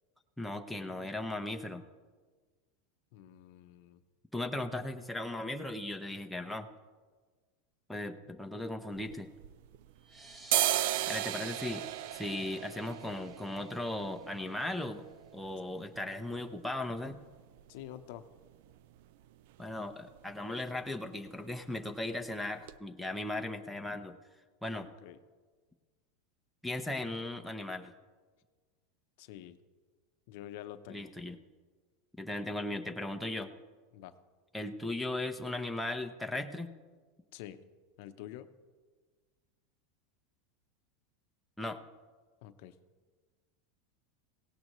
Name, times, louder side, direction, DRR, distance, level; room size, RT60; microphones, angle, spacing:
voice 1, 0.4-1.8 4.3-6.7 7.9-9.3 11.1-11.9 12.1-15.0 15.3-17.2 19.6-24.2 24.6-24.9 26.6-27.9 30.9-31.4 32.2-33.5 34.5-36.7 41.6-41.8, left 1 dB, ahead, 4 dB, 0.7 m, -37 dB
voice 2, 3.1-4.0 17.7-18.2 24.8-25.2 29.2-29.6 30.3-31.1 33.9-34.1 37.3-37.6 38.0-38.5 42.4-42.8, left 12 dB, 60° left, 10 dB, 0.7 m, -47 dB
sound 1, 8.9-10.0 10.3-18.0 18.4-18.5 18.7-19.3 19.6-19.8 20.1-20.3 20.6-21.3 21.6-21.8 22.3-22.4 22.7-22.8, right 14 dB, 65° right, 0.4 m, -36 dB
sound 2, 10.0-15.1, right 2 dB, 15° right, 1.4 m, -56 dB
17.5 x 17.0 x 3.1 m, 1.5 s
supercardioid pair, 145°, 0 cm